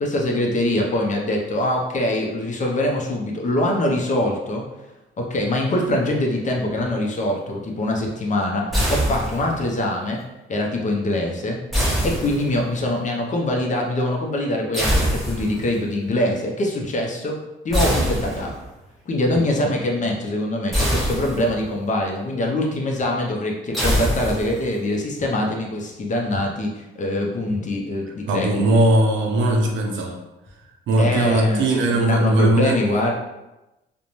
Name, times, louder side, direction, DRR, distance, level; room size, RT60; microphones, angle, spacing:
voice 1, 0.0-4.7 5.2-10.2 10.5-11.6 12.0-18.5 19.1-28.6 31.0-33.1, left 1 dB, 40° left, 0 dB, 0.6 m, -23 dB
sound 1, 8.7-9.7 11.7-12.8 14.7-15.7 17.7-18.7 20.7-21.7 23.7-24.7, equal, ahead, 0.9 m, -23 dB
voice 2, 28.3-30.2 30.9-32.8, right 1 dB, 70° right, 2 dB, 0.5 m, -19 dB
2.5 x 2.1 x 3.0 m, 0.99 s
cardioid pair, 90°, 20 cm